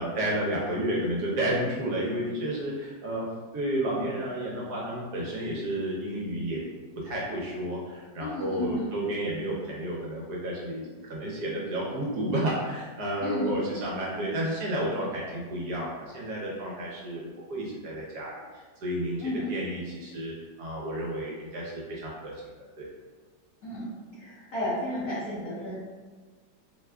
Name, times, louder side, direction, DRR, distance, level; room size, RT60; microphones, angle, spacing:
voice 1, 0.0-3.3 3.5-6.6 7.0-22.3 22.6-22.9, right 1 dB, 65° right, -4 dB, 1.1 m, -31 dB
voice 2, 8.2-8.9 13.2-13.5 19.2-19.5 23.6-23.9 24.2-25.8, left 1 dB, 60° left, -8 dB, 1.6 m, -32 dB
4.7 x 2.3 x 2.2 m, 1.3 s
omnidirectional pair, 1.9 m